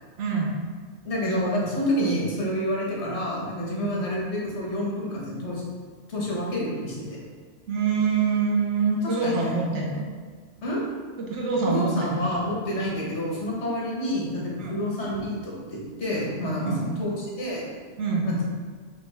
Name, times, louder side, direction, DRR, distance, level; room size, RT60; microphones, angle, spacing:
voice 1, 0.2-0.6 3.7-3.9 7.7-10.1 11.2-12.1 14.6-14.8 16.6-16.9 18.0-18.3, right 4 dB, 85° right, -2 dB, 1.1 m, -25 dB
voice 2, 1.0-5.6 6.1-7.2 9.0-9.8 10.6-10.8 11.7-17.6 18.2-18.4, equal, 75° left, -4 dB, 1.4 m, -28 dB
5.3 x 2.6 x 3.3 m, 1.5 s
omnidirectional pair, 1.2 m